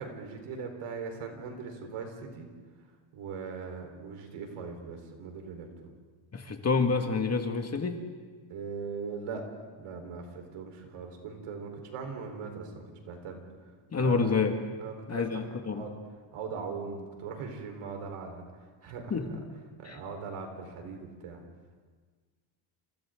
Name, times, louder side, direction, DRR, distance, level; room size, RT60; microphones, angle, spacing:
voice 1, 0.0-2.5 3.1-5.9 8.5-9.4 9.8-14.4 14.8-15.4 15.7-16.0 16.3-19.4 19.8-21.4, right 5 dB, 80° right, 3 dB, 4.5 m, -40 dB
voice 2, 6.3-8.0 13.9-14.5 15.1-15.8 19.1-19.3 19.8-20.0, left 4 dB, 30° left, 4 dB, 2.0 m, -28 dB
28.5 x 27.5 x 3.9 m, 1.5 s
cardioid pair, 125°, 50 cm